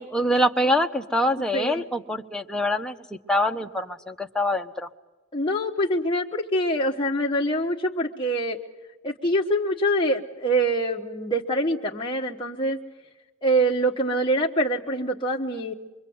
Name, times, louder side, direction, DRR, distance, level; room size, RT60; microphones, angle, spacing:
voice 1, 0.0-2.9 3.3-4.9, left 1 dB, 5° left, 4 dB, 1.0 m, -24 dB
voice 2, 1.4-1.9 5.3-8.6 9.0-12.8 13.4-15.7, right 1 dB, 25° left, -2 dB, 1.2 m, -25 dB
24.5 x 24.5 x 7.9 m, 1.1 s
head